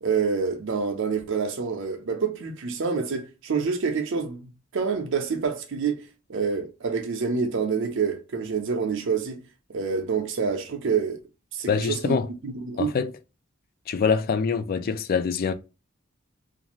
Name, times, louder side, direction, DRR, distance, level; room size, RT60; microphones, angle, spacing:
voice 1, 0.0-6.0 6.3-9.4 9.7-11.2 11.5-12.2 12.4-12.9, right 5 dB, 65° right, 0.5 m, -27 dB
voice 2, 11.7-12.3 12.8-13.1 13.9-15.5, left 5 dB, 45° left, 0.3 m, -24 dB
2.5 x 2.4 x 2.9 m
head